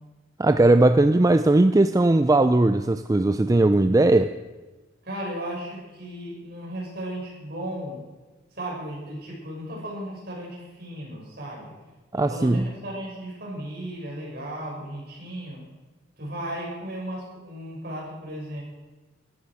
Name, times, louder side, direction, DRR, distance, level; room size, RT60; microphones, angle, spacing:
voice 1, 0.4-4.3 12.1-12.7, right 2 dB, 15° right, 10 dB, 0.4 m, -18 dB
voice 2, 5.0-8.0 8.5-11.8 12.1-15.6 16.2-18.6, right 1 dB, 50° right, -3 dB, 6.2 m, -35 dB
15.0 x 12.5 x 6.3 m, 1.2 s
head